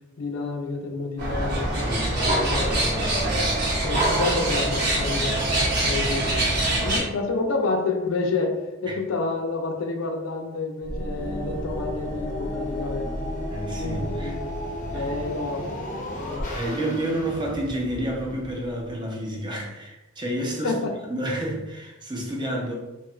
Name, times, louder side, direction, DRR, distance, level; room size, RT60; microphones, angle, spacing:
voice 1, 0.2-3.1 3.8-6.5 6.8-13.3 13.8-14.4 14.9-16.7 20.6-20.9, left 3 dB, 80° left, 3 dB, 0.5 m, -29 dB
sound 1, 1.2-7.0, right 1 dB, 55° right, 0.9 m, -24 dB
voice 2, 1.9-3.5 8.9-9.0 13.5-14.3 14.8-15.1 16.5-20.7 21.1-22.7, right 1 dB, 25° right, -1 dB, 0.6 m, -30 dB
sound 2, 10.8-18.9, equal, 40° left, 0.6 m, -33 dB
2.9 x 2.4 x 3.0 m, 1.0 s
head